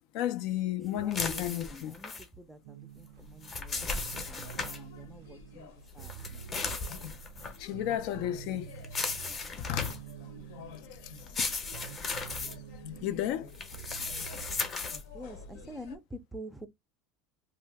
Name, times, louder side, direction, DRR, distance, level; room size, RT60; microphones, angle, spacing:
voice 1, 0.1-2.0 7.6-8.7 9.6-10.0 13.0-13.5, left 12 dB, 55° left, 0.4 m, -32 dB
voice 2, 0.9-6.1 15.1-16.7, equal, 5° right, 0.5 m, -47 dB
sound 1, 1.1-2.2 3.2-4.8 6.0-7.6 8.8-10.1 11.1-12.5 13.5-15.0, left 4 dB, 25° left, 0.7 m, -36 dB
sound 2, 2.6-14.7, right 10 dB, 80° right, 0.4 m, -48 dB
sound 3, 4.4-16.0, left 5 dB, 75° left, 0.8 m, -50 dB
2.7 x 2.3 x 3.3 m
supercardioid pair, 155°, 0 cm